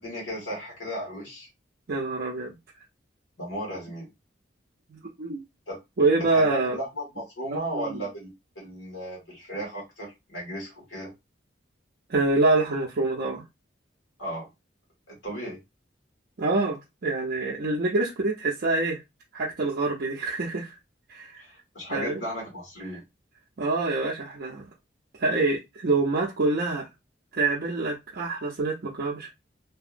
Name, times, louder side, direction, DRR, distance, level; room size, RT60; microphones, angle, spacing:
voice 1, 0.0-1.5 3.4-4.1 5.7-5.8 6.1-8.3 8.6-11.1 14.2-14.5 15.1-15.6 21.4-23.0, equal, 80° left, 1.8 m, -35 dB
voice 2, 1.9-2.6 4.9-5.4 6.0-6.8 7.5-8.0 12.1-13.4 16.4-19.0 19.3-20.7 21.1-21.4 21.9-22.2 23.6-24.7 25.2-26.9 27.3-29.3, right 3 dB, 55° right, 0.6 m, -26 dB
2.8 x 2.6 x 2.5 m
head